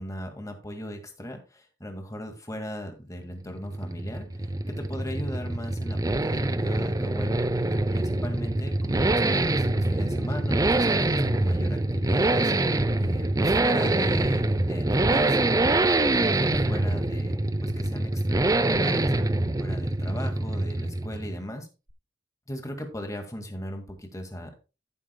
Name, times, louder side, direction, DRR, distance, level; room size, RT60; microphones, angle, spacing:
voice 1, 0.0-7.4 7.9-12.5 13.0-15.6 16.0-18.3 18.7-19.1 19.6-21.7 22.5-24.6, equal, 20° left, 4 dB, 2.0 m, -38 dB
sound 1, 3.4-21.4, right 2 dB, 20° right, 0.5 m, -25 dB
14.5 x 7.6 x 2.3 m, 0.30 s
head